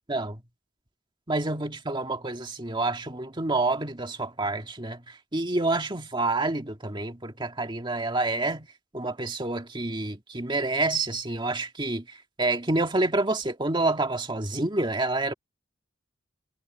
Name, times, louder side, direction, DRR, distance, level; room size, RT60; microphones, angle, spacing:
voice 1, 0.1-0.4 1.3-5.0 5.3-8.7 8.9-12.0 12.4-15.3, right 2 dB, 25° right, 1.9 m, -28 dB
head